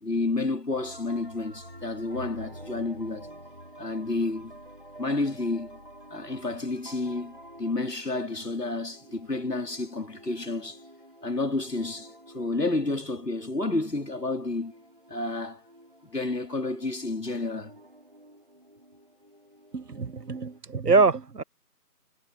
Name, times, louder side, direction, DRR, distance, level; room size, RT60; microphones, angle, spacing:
voice 1, 0.0-3.3 3.8-4.5 5.0-5.8 6.1-10.8 11.2-14.7 15.1-15.6 16.0-17.7, left 2 dB, 85° left, 3.2 m, -30 dB
sound 1, 0.7-20.6, equal, 35° right, 2.8 m, -49 dB
voice 2, 19.7-21.4, right 4 dB, 80° right, 1.0 m, -24 dB
figure-of-eight pair, 180°, 47 cm